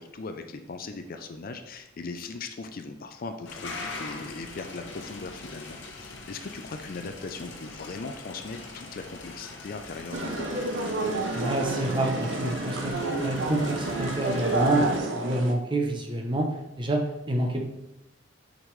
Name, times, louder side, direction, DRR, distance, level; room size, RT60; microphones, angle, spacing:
voice 1, 0.0-10.7, left 3 dB, 50° left, 7 dB, 0.5 m, -39 dB
sound 1, 3.5-15.0, left 3 dB, 65° left, 0.9 m, -42 dB
sound 2, 10.1-15.5, right 2 dB, 70° right, 0.8 m, -29 dB
voice 2, 11.3-12.9 13.2-14.9 15.1-17.6, right 1 dB, 25° right, 2 dB, 0.8 m, -28 dB
6.3 x 5.2 x 3.2 m, 0.90 s
head